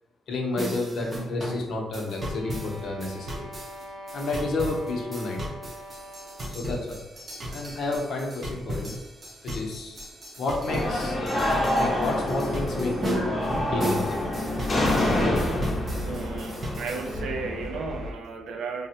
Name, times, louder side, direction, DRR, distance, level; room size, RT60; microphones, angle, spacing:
voice 1, 0.3-3.5 4.1-5.7 6.5-7.0 7.4-9.0 9.4-10.1 10.4-11.2 11.8-13.3 13.7-14.3, left 2 dB, 70° left, 0 dB, 0.7 m, -31 dB
sound 1, 0.6-17.1, equal, 30° right, 0.6 m, -36 dB
sound 2, 1.9-6.6, equal, 65° right, 0.9 m, -43 dB
sound 3, 10.7-18.1, left 1 dB, 30° left, 0.7 m, -27 dB
voice 2, 16.0-18.9, right 4 dB, 90° right, 4 dB, 0.4 m, -34 dB
3.3 x 2.1 x 2.8 m, 1.1 s
cardioid pair, 135°, 0 cm